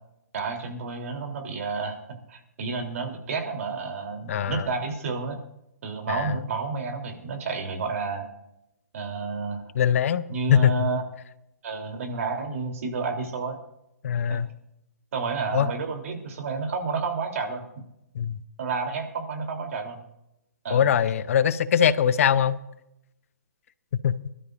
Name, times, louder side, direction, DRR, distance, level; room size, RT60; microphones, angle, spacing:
voice 1, 0.3-2.0 2.3-5.4 5.8-8.3 8.9-9.6 10.3-11.0 11.6-13.6 14.3-14.4 15.1-17.6 18.6-20.0 20.6-20.9, right 4 dB, 55° right, 3.2 m, -30 dB
voice 2, 4.3-4.7 6.1-6.4 9.7-10.2 10.5-10.9 14.0-14.5 15.5-15.7 18.1-18.4 20.7-22.6 23.9-24.2, left 8 dB, 55° left, 0.7 m, -22 dB
22.5 x 12.5 x 2.5 m
figure-of-eight pair, 130°, 9 cm